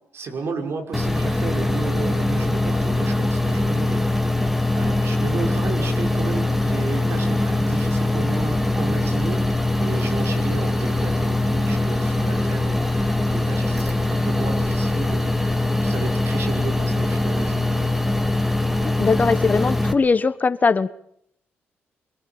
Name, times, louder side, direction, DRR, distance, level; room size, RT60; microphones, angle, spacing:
voice 1, 0.1-4.5 4.7-15.3 15.8-17.9, right 4 dB, 65° right, 5 dB, 6.0 m, -33 dB
sound 1, 0.9-19.9, left 2 dB, 5° right, 3.0 m, -22 dB
voice 2, 18.8-20.9, left 4 dB, 35° left, 14 dB, 1.2 m, -20 dB
25.5 x 22.0 x 7.5 m, 0.69 s
cardioid pair, 85°, 5 cm